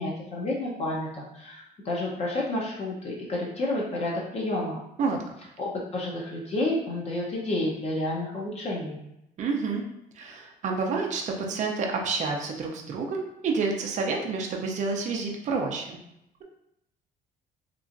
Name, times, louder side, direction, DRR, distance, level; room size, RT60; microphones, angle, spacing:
voice 1, 0.0-4.8 5.6-9.0, left 2 dB, 40° left, -4 dB, 0.7 m, -30 dB
voice 2, 9.4-9.8 10.2-16.0, right 4 dB, 45° right, 1 dB, 0.5 m, -29 dB
2.9 x 2.4 x 2.5 m, 0.81 s
cardioid pair, 110°, 17 cm